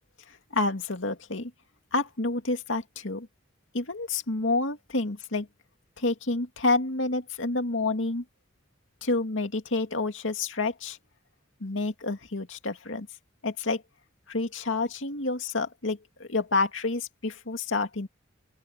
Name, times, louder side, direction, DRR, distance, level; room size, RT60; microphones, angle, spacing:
voice 1, 0.3-1.5 1.9-3.3 3.7-5.5 6.0-8.2 9.0-11.0 11.6-13.1 13.4-13.8 14.3-18.1, left 3 dB, 80° left, 2.3 m, -29 dB
open air
head